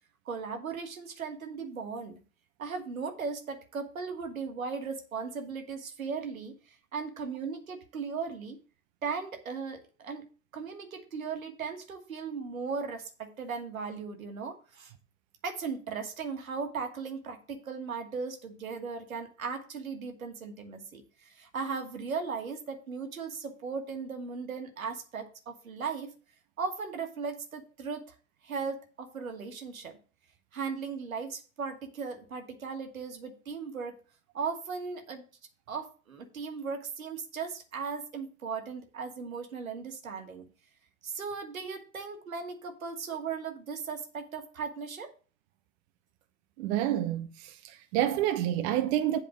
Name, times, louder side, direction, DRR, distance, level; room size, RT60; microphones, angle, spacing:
voice 1, 0.3-2.2 2.6-8.6 9.0-10.3 10.5-14.9 15.4-26.1 26.6-28.2 28.4-30.0 30.5-33.9 34.3-35.2 35.7-40.5 41.0-45.1, right 5 dB, 85° right, 1.6 m, -37 dB
voice 2, 46.6-49.2, right 12 dB, 55° right, 0.9 m, -28 dB
8.2 x 4.7 x 6.2 m
hypercardioid pair, 90°, 40 cm